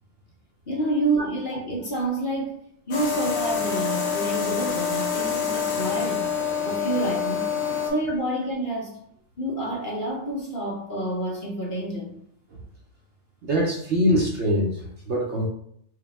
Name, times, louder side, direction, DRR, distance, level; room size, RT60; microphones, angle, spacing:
voice 1, 0.7-2.6 2.9-6.3 6.6-7.5 7.9-9.0 9.4-12.1, right 2 dB, 50° left, -1 dB, 0.7 m, -28 dB
sound 1, 2.9-7.9, left 7 dB, 70° left, 1.2 m, -26 dB
voice 2, 13.4-15.5, equal, 60° right, -1 dB, 0.9 m, -23 dB
4.7 x 2.2 x 3.4 m, 0.68 s
omnidirectional pair, 1.5 m